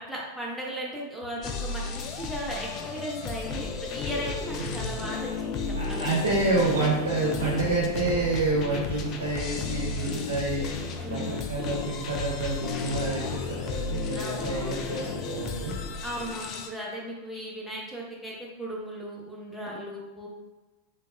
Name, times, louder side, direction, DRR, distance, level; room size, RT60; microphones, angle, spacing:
voice 1, 0.0-6.2 9.8-10.4 11.0-11.5 14.1-14.8 16.0-20.3, equal, 5° left, -4 dB, 0.7 m, -37 dB
sound 1, 1.4-16.7, left 4 dB, 35° left, 0.3 m, -33 dB
voice 2, 5.8-10.8 11.1-15.7, right 3 dB, 70° right, -5 dB, 0.7 m, -28 dB
3.3 x 2.2 x 2.5 m, 1.2 s
figure-of-eight pair, 90°, 0 cm